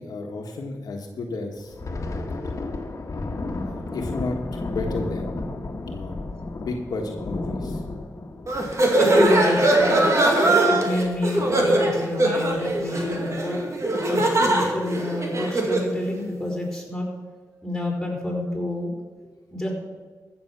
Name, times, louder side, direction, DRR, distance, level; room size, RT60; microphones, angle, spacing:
voice 1, 0.0-1.8 3.6-5.4 5.8-6.2 6.6-7.8, left 3 dB, 80° left, 1 dB, 1.4 m, -32 dB
Thunder, 1.6-10.7 11.0-11.2 11.6-11.9 12.5-12.9, left 2 dB, 50° left, 1.6 m, -33 dB
sound 1, 8.5-15.9, right 1 dB, 50° right, 2.2 m, -21 dB
voice 2, 9.0-10.1 10.7-13.6 14.1-17.1 17.6-18.9 19.5-19.7, left 1 dB, 5° left, -1 dB, 4.6 m, -28 dB
15.0 x 6.8 x 5.9 m, 1.4 s
cardioid pair, 60°, 7 cm